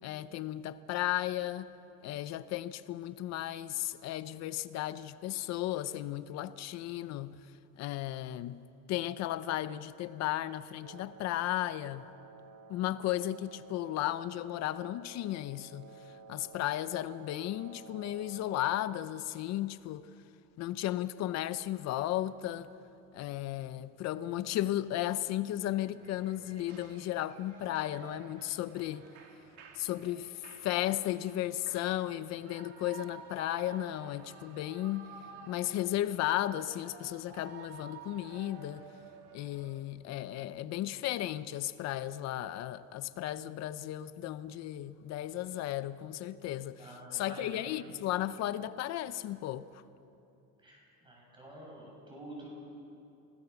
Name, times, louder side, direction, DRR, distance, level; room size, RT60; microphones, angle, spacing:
voice 1, 0.0-1.7 2.0-7.4 7.8-8.6 8.9-12.0 12.7-15.9 16.3-20.1 20.6-22.7 23.1-29.1 29.8-35.1 35.5-38.9 39.3-49.8, left 13 dB, 50° left, 0.6 m, -35 dB
Wind instrument woodwind instrument, 10.7-19.1, right 4 dB, 85° right, 1.9 m, -54 dB
Shout / Cheering, 26.0-39.8, right 6 dB, 45° right, 2.2 m, -53 dB
voice 2, 46.8-47.7 50.6-52.5, right 1 dB, 15° right, 7.8 m, -48 dB
29.5 x 19.5 x 7.0 m
cardioid pair, 180°, 36 cm